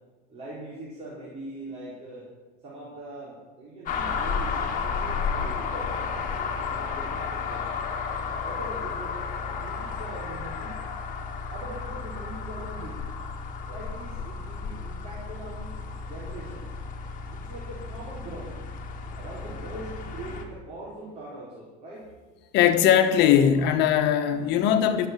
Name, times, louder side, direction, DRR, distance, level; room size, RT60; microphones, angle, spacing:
voice 1, 0.3-2.3 2.6-7.7 8.4-10.8 11.5-13.0 13.7-15.8 16.0-16.7 17.3-18.5 19.2-22.1, right 1 dB, 30° right, -7 dB, 4.1 m, -42 dB
sound 1, 3.9-20.4, left 5 dB, 40° left, 2.0 m, -33 dB
voice 2, 22.5-25.1, left 9 dB, 60° left, 8 dB, 1.4 m, -20 dB
12.0 x 7.9 x 8.3 m, 1.2 s
supercardioid pair, 125°, 20 cm